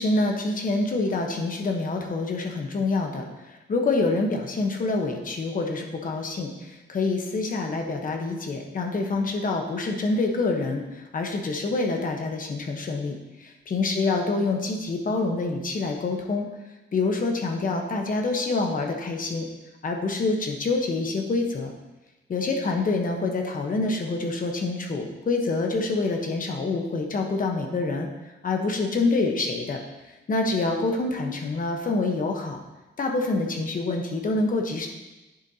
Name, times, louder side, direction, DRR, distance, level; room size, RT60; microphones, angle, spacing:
voice 1, 0.0-16.5 16.9-19.5 19.8-21.7 22.3-28.1 28.4-29.8 30.1-32.6 33.0-34.9, left 3 dB, 45° left, 2 dB, 1.1 m, -26 dB
10.5 x 7.0 x 2.8 m, 1.0 s
wide cardioid pair, 175°, 20 cm